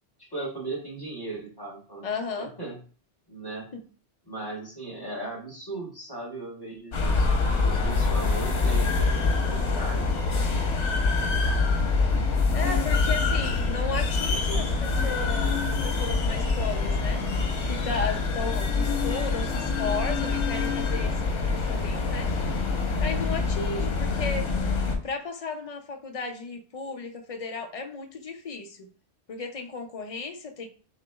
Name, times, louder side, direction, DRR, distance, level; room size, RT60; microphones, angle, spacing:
voice 1, 0.2-2.0 2.3-2.8 3.3-3.7 4.3-10.1 11.1-11.6, right 2 dB, 20° left, -4 dB, 1.5 m, -37 dB
voice 2, 2.0-2.5 3.7-3.8 12.5-22.3 23.0-24.5 25.0-28.9 29.3-30.7, left 4 dB, 40° left, 5 dB, 0.5 m, -34 dB
sound 1, 6.9-25.0, left 4 dB, 90° left, 1.3 m, -25 dB
6.5 x 3.0 x 2.3 m, 0.40 s
omnidirectional pair, 1.2 m